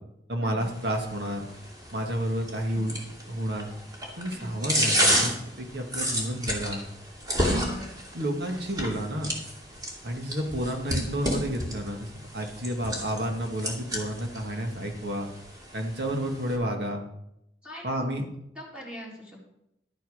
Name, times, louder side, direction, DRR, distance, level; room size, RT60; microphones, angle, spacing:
voice 1, 0.3-1.5 1.9-2.9 3.3-3.7 4.2-6.8 7.4-7.8 8.1-9.3 10.0-15.3 15.7-17.0 17.8-18.2, equal, 65° right, 3 dB, 1.9 m, -30 dB
sound 1, 0.6-16.6, equal, 20° right, 2.5 m, -32 dB
voice 2, 7.3-7.9 16.6-16.9 17.6-18.1 18.6-19.4, equal, 5° right, -4 dB, 3.7 m, -43 dB
12.0 x 8.9 x 5.0 m, 0.81 s
head